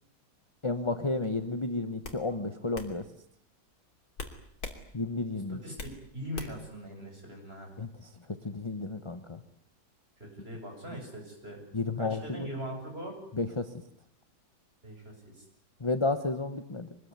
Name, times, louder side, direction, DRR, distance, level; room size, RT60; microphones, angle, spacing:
voice 1, 0.6-3.1 4.9-5.6 7.8-8.1 8.4-9.4 11.7-12.5 13.3-13.7 15.8-16.9, left 3 dB, 20° left, 9 dB, 1.1 m, -32 dB
sound 1, 1.2-1.5 2.0-2.2 2.7-2.9 4.2-4.8 5.2-6.0 6.3-6.7, left 3 dB, 60° left, 3.4 m, -40 dB
voice 2, 5.5-7.7 10.2-11.6 12.0-13.1 14.8-15.4, equal, 35° right, 2 dB, 8.0 m, -41 dB
24.0 x 20.0 x 9.6 m, 0.68 s
omnidirectional pair, 1.9 m